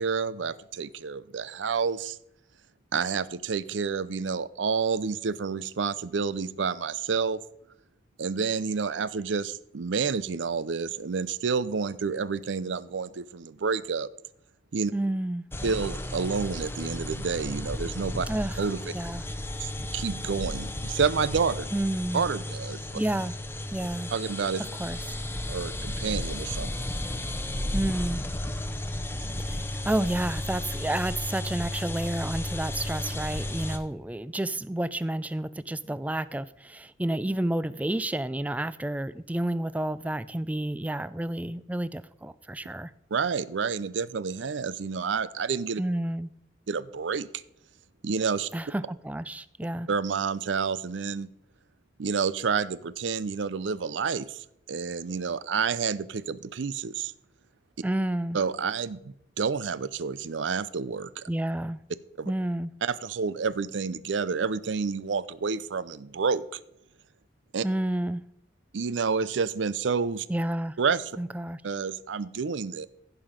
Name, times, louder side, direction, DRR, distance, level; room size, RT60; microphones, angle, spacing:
voice 1, 0.0-2.2 2.9-7.4 8.2-14.1 14.7-14.9 15.6-18.3 18.6-18.8 19.6-21.7 22.1-23.0 24.1-24.7 25.5-26.7 43.1-45.8 46.7-47.3 48.0-48.5 49.9-51.3 52.0-57.1 58.3-61.3 62.2-62.3 62.8-66.4 67.5-67.6 68.7-70.3 70.8-71.1 71.6-72.9, right 5 dB, 80° right, 0.5 m, -29 dB
voice 2, 14.9-15.4 18.3-18.6 18.9-19.2 21.7-22.2 22.9-23.3 23.7-24.1 24.8-25.0 27.7-28.2 29.4-42.9 45.8-46.3 48.5-49.9 57.8-58.4 61.3-61.8 62.3-62.7 67.6-68.2 70.3-70.7 71.2-71.6, right 1 dB, 10° right, 0.3 m, -30 dB
sound 1, 15.5-33.8, left 1 dB, 15° left, 0.7 m, -34 dB
15.0 x 5.7 x 5.1 m
head